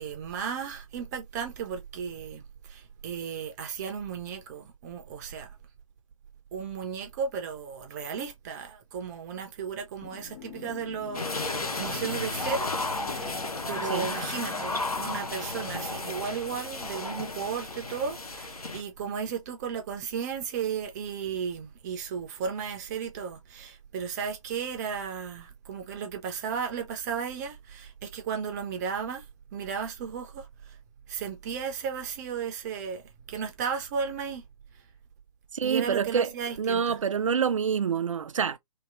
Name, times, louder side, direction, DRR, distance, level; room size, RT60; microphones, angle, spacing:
voice 1, 0.0-5.5 6.5-12.7 13.1-13.3 13.7-29.2 29.5-30.8 31.1-33.0 33.3-34.5 35.6-37.0, right 6 dB, 30° right, 0.7 m, -34 dB
sound 1, 10.0-15.3, left 8 dB, 35° left, 0.7 m, -46 dB
sound 2, 11.1-18.8, left 2 dB, 85° left, 0.7 m, -33 dB
voice 2, 35.5-36.3 36.6-38.6, right 7 dB, 60° right, 0.5 m, -26 dB
2.9 x 2.8 x 2.5 m
figure-of-eight pair, 130°, 18 cm